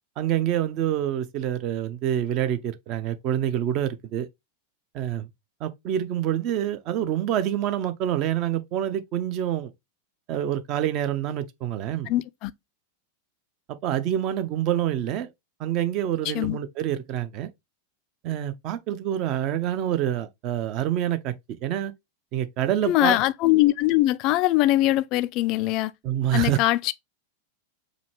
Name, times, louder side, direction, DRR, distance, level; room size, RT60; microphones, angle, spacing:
voice 1, 0.2-4.3 4.9-5.3 5.6-9.7 10.3-12.1 13.8-15.3 15.6-17.5 18.2-21.3 21.6-21.9 22.3-23.1 26.0-26.6, right 11 dB, 40° right, 0.6 m, -26 dB
voice 2, 12.1-12.5 16.2-16.6 22.9-25.9 26.3-26.9, left 16 dB, 40° left, 0.3 m, -22 dB
4.9 x 2.8 x 3.1 m
figure-of-eight pair, 90°, 0 cm